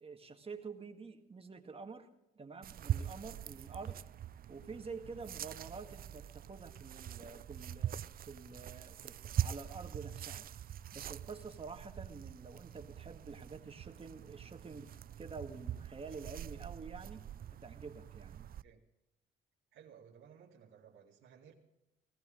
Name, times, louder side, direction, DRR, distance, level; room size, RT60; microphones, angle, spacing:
voice 1, 0.0-2.1 2.4-4.0 4.5-10.5 10.9-17.2 17.6-18.5, right 4 dB, 30° right, 5 dB, 1.8 m, -48 dB
sound 1, 2.6-18.6, right 11 dB, 50° right, 0.4 m, -43 dB
voice 2, 19.7-21.5, right 8 dB, 85° right, -3 dB, 2.2 m, -58 dB
17.5 x 15.0 x 3.8 m, 0.90 s
cardioid pair, 90°, 20 cm